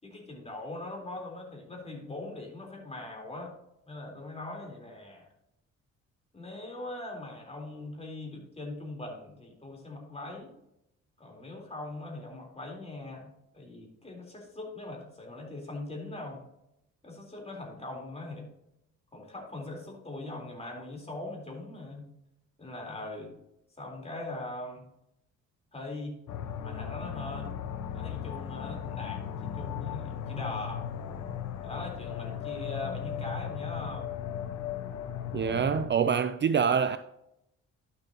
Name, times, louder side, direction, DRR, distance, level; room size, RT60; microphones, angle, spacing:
voice 1, 0.0-3.5 3.9-5.3 6.3-10.5 11.2-13.3 13.5-16.4 17.0-18.5 19.1-22.1 22.6-23.4 23.8-24.9 25.7-26.2 26.6-27.6 27.9-30.9 31.6-34.1, left 2 dB, 20° left, 3.7 m, -41 dB
sound 1, 26.3-35.9, left 9 dB, 70° left, 0.8 m, -37 dB
voice 2, 35.3-37.0, right 7 dB, 40° right, 0.5 m, -25 dB
11.5 x 7.0 x 2.9 m
cardioid pair, 90°, 30 cm